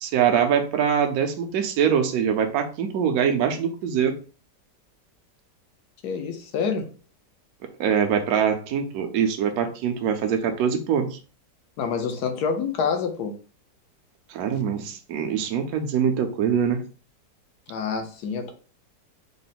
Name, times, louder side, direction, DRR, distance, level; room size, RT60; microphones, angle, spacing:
voice 1, 0.0-4.1 7.8-11.2 14.3-16.8, right 8 dB, 70° right, 6 dB, 1.0 m, -23 dB
voice 2, 6.0-6.9 11.8-13.3 17.7-18.5, left 6 dB, 70° left, 5 dB, 1.2 m, -27 dB
3.7 x 2.1 x 4.0 m, 0.39 s
omnidirectional pair, 1.9 m